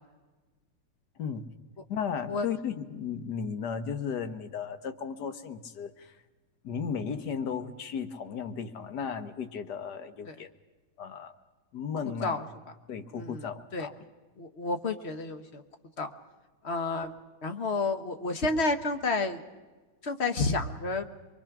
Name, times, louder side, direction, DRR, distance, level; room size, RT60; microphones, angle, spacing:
voice 1, 1.2-1.5 1.9-6.1 6.6-10.5 11.0-11.3 11.7-12.4 12.9-13.9, left 6 dB, 55° left, 9 dB, 1.6 m, -35 dB
voice 2, 13.1-13.5 13.7-13.9 14.4-15.6 16.0-16.1 16.6-17.1 17.4-19.4 20.0-21.0, left 3 dB, 40° left, 7 dB, 1.2 m, -30 dB
24.5 x 23.0 x 6.0 m, 1.3 s
omnidirectional pair, 2.3 m